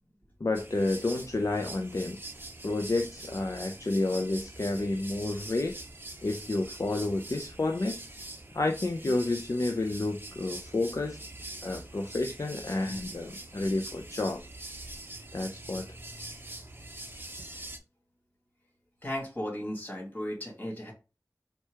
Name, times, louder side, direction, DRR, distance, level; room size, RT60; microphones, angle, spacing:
voice 1, 0.4-2.2 2.6-5.7 6.2-8.0 8.5-11.2 11.6-14.4 15.3-15.8, left 2 dB, 55° left, 0.5 m, -30 dB
sound 1, 0.5-17.8, right 2 dB, 35° right, 0.6 m, -44 dB
voice 2, 19.0-20.9, left 1 dB, 25° left, 2.1 m, -35 dB
4.4 x 2.3 x 4.6 m
wide cardioid pair, 55°, 6 cm